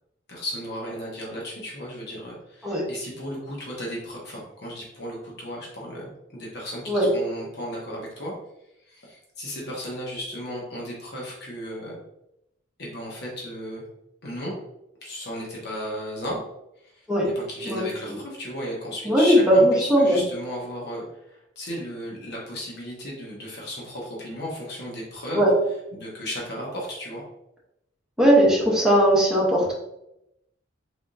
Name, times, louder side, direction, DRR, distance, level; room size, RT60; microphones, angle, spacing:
voice 1, 0.3-8.3 8.8-12.0 12.8-13.8 14.2-14.6 15.0-16.4 16.8-25.4 25.9-27.2, equal, 60° left, -3 dB, 1.0 m, -35 dB
voice 2, 17.7-18.2 19.0-20.2 25.3-25.5 28.2-29.7, equal, 5° right, -5 dB, 1.1 m, -19 dB
3.6 x 3.5 x 2.6 m, 0.83 s
head